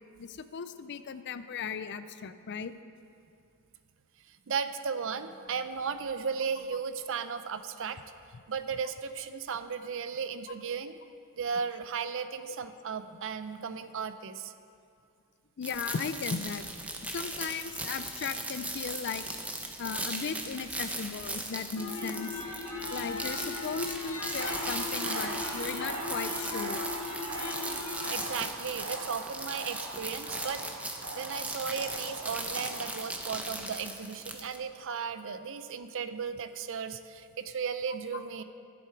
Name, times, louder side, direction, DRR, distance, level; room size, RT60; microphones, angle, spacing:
voice 1, 0.2-2.7 15.6-16.6 17.0-19.3 19.8-22.3 22.9-26.9 32.1-32.2, left 6 dB, 50° left, 12 dB, 0.4 m, -37 dB
voice 2, 4.5-8.0 8.5-11.0 11.4-14.5 25.2-25.3 28.1-30.6 30.9-38.4, right 6 dB, 60° right, 11 dB, 0.5 m, -35 dB
sound 1, 15.6-34.6, right 2 dB, 5° right, 0.8 m, -38 dB
sound 2, 21.8-28.2, left 3 dB, 85° left, 1.4 m, -38 dB
sound 3, 24.4-33.0, right 2 dB, 80° right, 1.5 m, -41 dB
13.5 x 7.8 x 4.6 m, 2.4 s
head